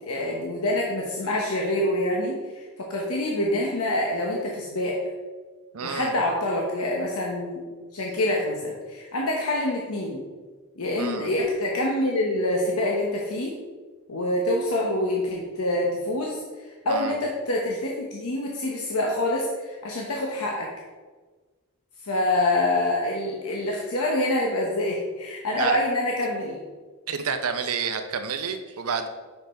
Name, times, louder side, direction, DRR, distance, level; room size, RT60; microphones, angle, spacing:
voice 1, 0.0-5.0 5.8-7.6 7.9-10.2 10.8-13.5 14.1-20.7 22.0-26.6, left 1 dB, 85° left, -2 dB, 0.9 m, -26 dB
voice 2, 5.7-6.1 11.0-11.3 16.9-17.1 25.6-25.8 27.1-29.1, right 6 dB, 85° right, 8 dB, 0.6 m, -29 dB
5.9 x 5.4 x 4.3 m, 1.4 s
head